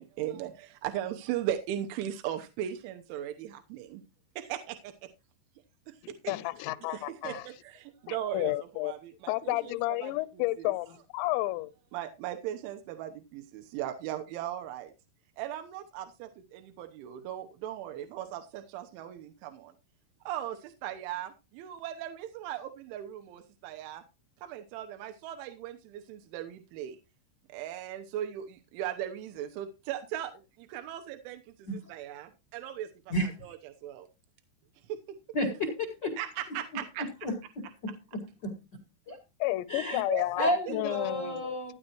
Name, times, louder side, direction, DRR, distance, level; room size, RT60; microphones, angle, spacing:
voice 1, 0.0-4.0 4.4-4.9 5.9-6.3 6.9-10.7 11.9-14.9 15.4-19.7 20.3-24.0 24.4-27.0 27.5-33.1 33.4-34.1 34.9-35.0 36.2-37.1 39.8-40.7, right 11 dB, 80° right, 3.3 m, -38 dB
voice 2, 6.0-7.4 8.1-8.9 9.3-11.7 39.4-41.7, left 19 dB, 80° left, 2.8 m, -31 dB
voice 3, 35.3-35.7 36.0-36.1 37.2-37.9 38.4-38.5 39.1-39.2 39.7-40.0 40.3-41.7, equal, 65° left, 1.1 m, -31 dB
15.5 x 10.0 x 3.0 m
omnidirectional pair, 5.5 m